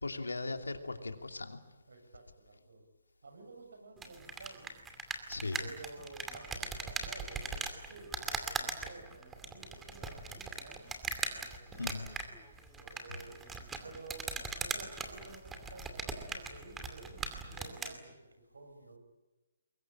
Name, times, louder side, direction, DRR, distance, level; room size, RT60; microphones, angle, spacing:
voice 1, 0.0-1.6 5.3-5.6 11.7-12.1 13.1-13.2, left 3 dB, 85° left, 6 dB, 2.9 m, -38 dB
voice 2, 1.9-2.8 3.2-4.7 5.6-12.0 12.8-13.4 13.8-19.0, right 3 dB, 75° right, 6 dB, 7.2 m, -52 dB
sound 1, 4.0-18.0, right 4 dB, 10° right, 2.4 m, -40 dB
24.0 x 22.0 x 8.8 m, 1.2 s
figure-of-eight pair, 145°, 0 cm